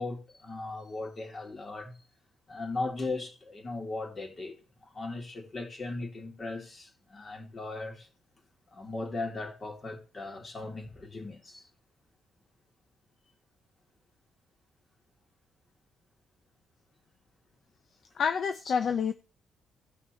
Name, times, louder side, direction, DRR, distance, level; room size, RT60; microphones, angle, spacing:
voice 1, 0.0-2.0 2.5-4.6 4.8-8.1 8.7-11.7, left 3 dB, 35° left, 2.9 m, -38 dB
voice 2, 18.2-19.1, left 6 dB, 55° left, 0.6 m, -28 dB
16.5 x 5.8 x 3.1 m
cardioid pair, 90°, 0 cm